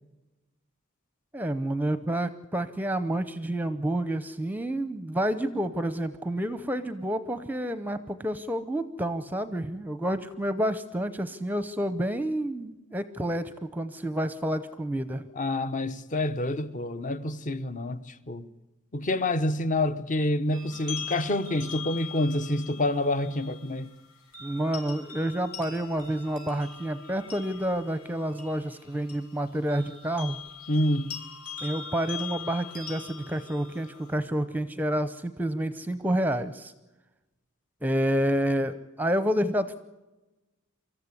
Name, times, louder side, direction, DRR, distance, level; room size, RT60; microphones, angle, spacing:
voice 1, 1.3-15.2 24.4-30.4 31.6-36.7 37.8-39.7, right 1 dB, 10° right, 0.7 m, -29 dB
voice 2, 15.3-18.4 18.9-23.9 30.7-31.1, left 1 dB, 35° left, 1.0 m, -27 dB
sound 1, 20.5-34.2, left 7 dB, 75° left, 6.1 m, -42 dB
25.0 x 14.0 x 9.7 m
head